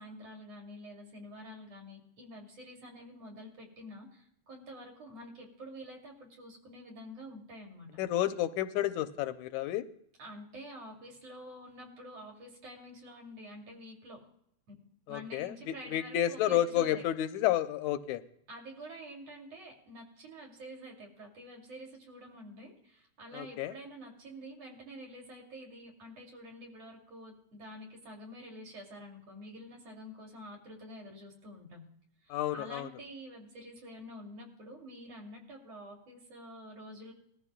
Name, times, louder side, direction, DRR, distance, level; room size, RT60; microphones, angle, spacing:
voice 1, 0.0-7.9 10.2-14.2 15.1-17.0 18.5-31.8 32.2-37.1, equal, 60° right, 0 dB, 3.6 m, -48 dB
voice 2, 8.0-9.8 15.1-18.2 23.3-23.7 32.3-32.9, left 12 dB, 85° left, 11 dB, 2.0 m, -31 dB
20.5 x 13.5 x 2.2 m, 0.70 s
omnidirectional pair, 3.3 m